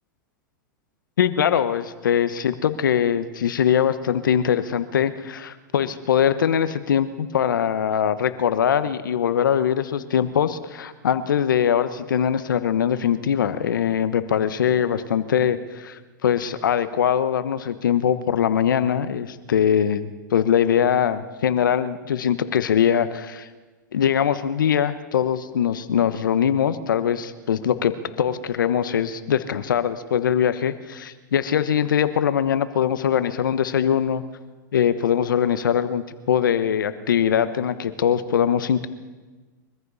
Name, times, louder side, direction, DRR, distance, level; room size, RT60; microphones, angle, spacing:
voice 1, 1.2-23.5 23.9-34.2 34.7-38.9, left 8 dB, 80° left, 12 dB, 1.2 m, -22 dB
24.0 x 14.5 x 4.1 m, 1.3 s
hypercardioid pair, 110°, 11 cm